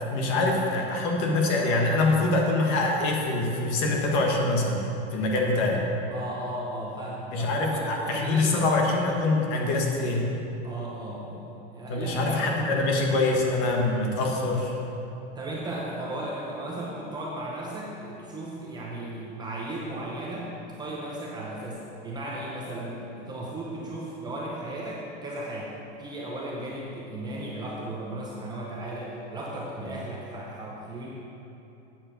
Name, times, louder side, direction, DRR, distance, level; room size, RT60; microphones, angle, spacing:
voice 1, 0.1-4.8 5.1-5.8 7.3-10.3 11.9-14.8 29.8-29.9, left 2 dB, 40° left, 0 dB, 1.6 m, -24 dB
voice 2, 6.1-8.7 10.6-12.5 12.8-12.9 15.3-25.7 26.0-31.1, right 1 dB, 10° right, -4 dB, 0.8 m, -36 dB
8.9 x 7.6 x 6.7 m, 2.9 s
supercardioid pair, 165°, 34 cm